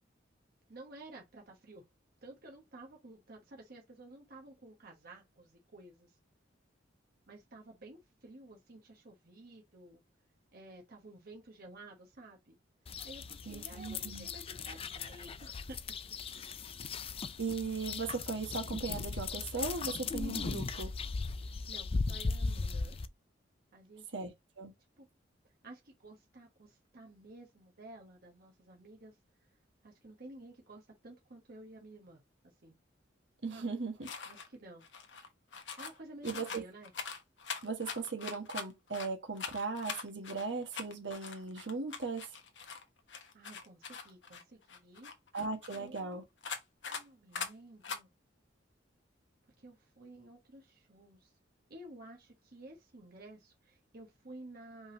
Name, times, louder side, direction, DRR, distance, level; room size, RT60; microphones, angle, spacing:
voice 1, 0.7-1.8 2.2-6.2 7.3-10.0 10.5-12.6 13.0-15.8 16.4-16.6 21.4-23.0 23.7-24.3 25.0-25.1 25.6-29.2 29.8-32.8 33.5-33.7 34.3-34.8 35.8-36.9 43.3-45.1 45.8-46.2 46.9-48.1 49.6-51.3 51.7-54.9, right 2 dB, 55° right, 1.2 m, -53 dB
sound 1, 12.9-23.1, left 4 dB, 30° left, 0.4 m, -38 dB
voice 2, 13.5-14.3 17.4-20.9 24.1-24.3 24.6-24.7 33.4-34.1 36.2-36.6 37.6-42.3 45.3-46.2, right 4 dB, 70° right, 1.4 m, -38 dB
sound 2, 34.0-34.5 34.8-36.0 36.2-39.1 39.4-42.8 43.1-46.0 46.4-47.0 47.3-47.5 47.8-48.0, left 6 dB, 70° left, 1.0 m, -43 dB
5.2 x 3.6 x 2.8 m
head